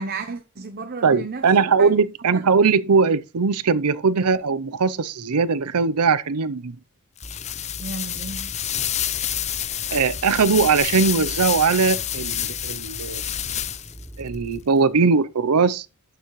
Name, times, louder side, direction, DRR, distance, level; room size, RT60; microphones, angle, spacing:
voice 1, 0.0-1.5 1.8-1.9 7.8-8.5, right 3 dB, 45° right, 0.8 m, -33 dB
voice 2, 1.0-6.8 9.9-13.2 14.2-15.9, right 5 dB, 90° right, 0.7 m, -20 dB
sound 1, 7.2-14.1, left 10 dB, 30° left, 0.5 m, -28 dB
sound 2, 7.2-14.6, right 1 dB, 5° right, 0.9 m, -40 dB
12.5 x 7.1 x 3.2 m
head